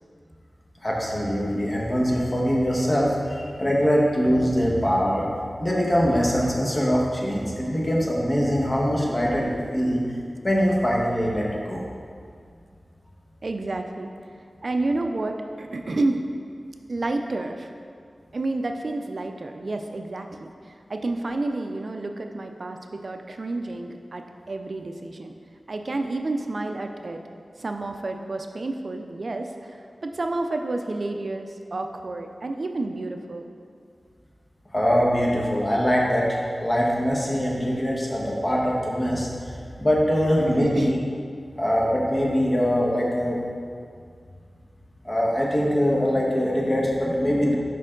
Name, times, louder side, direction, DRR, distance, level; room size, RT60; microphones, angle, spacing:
voice 1, 0.8-5.2 5.6-10.0 10.4-11.8 34.7-39.3 39.8-41.0 41.6-43.4 45.0-47.6, equal, 25° left, -3 dB, 1.2 m, -23 dB
voice 2, 13.4-14.4 14.6-16.2 16.9-17.7 18.3-25.3 25.7-27.2 27.6-33.5 40.4-40.9, right 2 dB, 55° right, 5 dB, 0.4 m, -30 dB
6.7 x 5.2 x 3.7 m, 2.2 s
wide cardioid pair, 85°, 0 cm